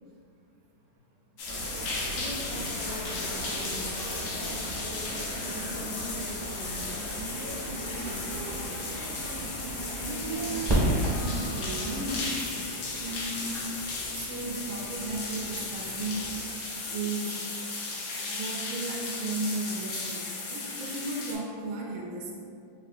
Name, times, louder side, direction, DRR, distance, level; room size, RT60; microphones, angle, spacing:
sound 1, 1.4-21.3, left 3 dB, 80° left, 1.4 m, -36 dB
sound 2, 1.5-12.3, right 1 dB, 50° right, 0.8 m, -38 dB
voice 1, 2.1-4.1 4.8-7.1 7.9-8.4, left 1 dB, 50° left, -10 dB, 0.5 m, -42 dB
voice 2, 10.0-13.7 14.3-16.4 16.9-17.4 18.3-22.3, right 2 dB, 90° right, -2 dB, 1.4 m, -35 dB
sound 3, 10.7-16.4, right 1 dB, 20° right, 0.7 m, -33 dB
5.6 x 2.9 x 2.5 m, 2.3 s
omnidirectional pair, 2.1 m